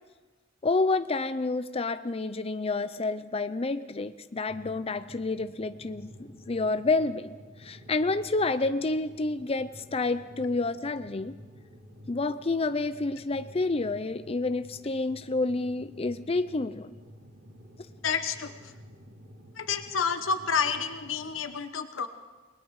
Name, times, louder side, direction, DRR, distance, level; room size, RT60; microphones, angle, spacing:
voice 1, 0.6-7.3 7.6-11.4 12.1-16.9, left 3 dB, 30° left, 11 dB, 0.6 m, -29 dB
sound 1, 4.5-21.4, equal, 80° right, 5.2 m, -51 dB
voice 2, 18.0-18.7 19.6-22.1, left 6 dB, 90° left, 8 dB, 1.1 m, -29 dB
29.0 x 21.0 x 4.9 m, 1.3 s
head